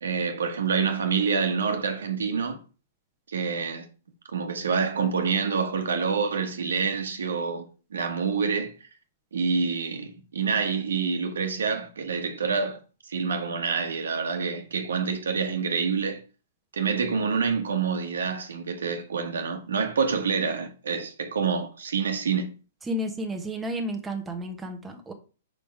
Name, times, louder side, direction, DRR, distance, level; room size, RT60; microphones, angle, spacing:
voice 1, 0.0-2.6 3.3-3.9 4.3-7.6 7.9-8.7 9.3-12.8 13.1-16.2 16.7-22.5, right 5 dB, 80° right, 1.3 m, -27 dB
voice 2, 22.9-25.1, equal, 10° right, 1.2 m, -32 dB
5.3 x 5.0 x 4.8 m
hypercardioid pair, 130°, 0 cm